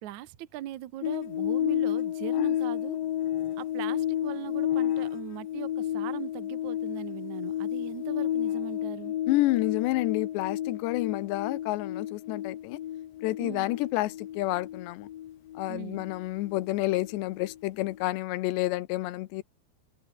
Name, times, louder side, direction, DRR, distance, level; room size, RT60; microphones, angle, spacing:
voice 1, 0.0-3.0 3.6-9.1 13.4-13.7 15.7-16.1, right 13 dB, 70° right, 1.8 m, -40 dB
sound 1, 1.0-17.6 17.8-18.0, left 11 dB, 65° left, 3.0 m, -32 dB
voice 2, 9.3-12.8 13.2-15.1 15.6-19.4, left 18 dB, 85° left, 3.1 m, -29 dB
open air
omnidirectional pair, 4.9 m